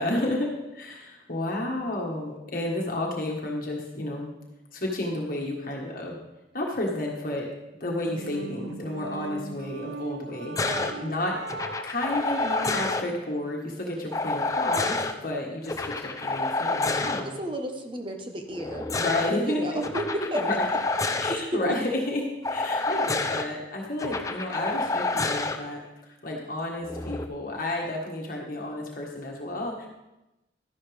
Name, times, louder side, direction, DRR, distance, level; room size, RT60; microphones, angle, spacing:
voice 1, 0.0-4.3 4.7-6.2 6.5-7.5 7.8-10.7 11.0-11.4 11.8-17.4 18.9-19.8 20.3-20.6 21.2-29.9, left 1 dB, 50° left, -2 dB, 1.6 m, -31 dB
sound 1, 7.9-13.0, right 3 dB, 65° right, 0.5 m, -39 dB
voice 2, 10.4-11.1 17.2-18.9 19.4-20.0 20.3-20.6 21.3-21.6, right 1 dB, 25° right, 4 dB, 1.1 m, -33 dB
sound 2, 10.6-10.9 11.5-13.0 14.1-15.1 15.7-17.2 18.5-19.3 19.8-21.4 22.4-23.4 24.0-25.6 26.9-27.2, left 3 dB, 20° left, 0.6 m, -28 dB
13.0 x 11.0 x 3.4 m, 0.98 s
head